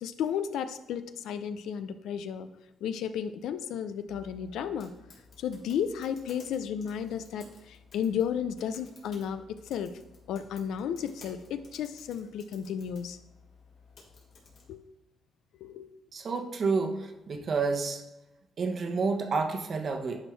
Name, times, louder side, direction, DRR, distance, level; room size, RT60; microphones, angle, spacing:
voice 1, 0.0-2.5 2.8-4.9 5.4-10.0 10.3-13.2 14.7-14.8 15.6-15.9, left 8 dB, 80° left, 10 dB, 0.5 m, -33 dB
sound 1, 4.1-14.7, left 4 dB, 65° left, 2.8 m, -55 dB
voice 2, 16.1-18.0 18.6-20.2, right 4 dB, 50° right, 5 dB, 1.0 m, -29 dB
11.0 x 4.4 x 3.3 m, 1.0 s
cardioid pair, 90°, 0 cm